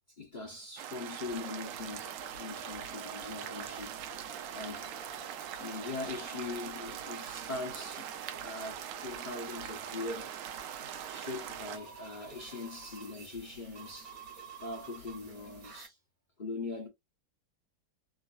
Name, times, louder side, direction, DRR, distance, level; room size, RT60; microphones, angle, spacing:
voice 1, 0.1-3.9 4.5-4.9 5.6-8.1 8.4-10.3 10.8-14.2 14.6-15.9 16.4-16.9, left 3 dB, 40° left, 0.7 m, -41 dB
sound 1, 0.8-11.8, right 11 dB, 90° right, 1.5 m, -42 dB
sound 2, 1.3-15.9, right 2 dB, 50° right, 1.5 m, -50 dB
3.8 x 2.5 x 2.5 m
omnidirectional pair, 2.2 m